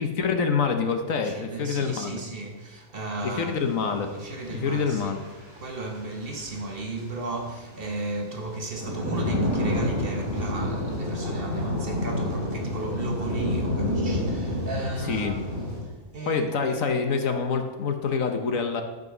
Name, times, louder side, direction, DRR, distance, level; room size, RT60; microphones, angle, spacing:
voice 1, 0.0-2.2 3.2-5.2 15.1-15.4 16.3-18.8, left 5 dB, 65° left, 1.3 m, -26 dB
voice 2, 1.2-3.6 4.2-5.1 5.6-16.8, right 2 dB, 45° right, 1.1 m, -35 dB
sound 1, 3.2-3.3 3.6-15.8, left 1 dB, 15° right, 3.3 m, -29 dB
12.5 x 5.3 x 5.9 m
omnidirectional pair, 1.5 m